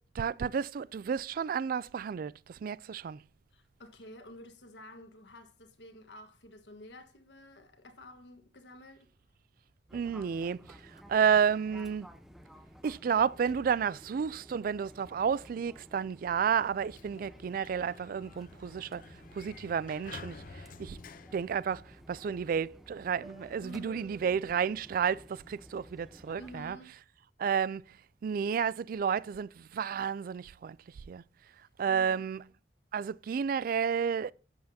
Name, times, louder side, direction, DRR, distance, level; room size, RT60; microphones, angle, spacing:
voice 1, 0.1-3.2 9.9-12.1 12.8-19.0 19.3-21.0 21.3-26.8 27.4-31.2 31.8-32.4 32.9-34.3, right 7 dB, 50° right, 0.3 m, -31 dB
voice 2, 3.5-9.1 23.6-24.2 26.4-26.9 31.6-32.2, left 1 dB, 80° left, 1.5 m, -50 dB
Fixed-wing aircraft airplane, 9.9-26.8, equal, ahead, 0.8 m, -54 dB
Sliding door, 16.7-22.3, left 4 dB, 50° left, 0.6 m, -51 dB
11.5 x 8.1 x 2.7 m
head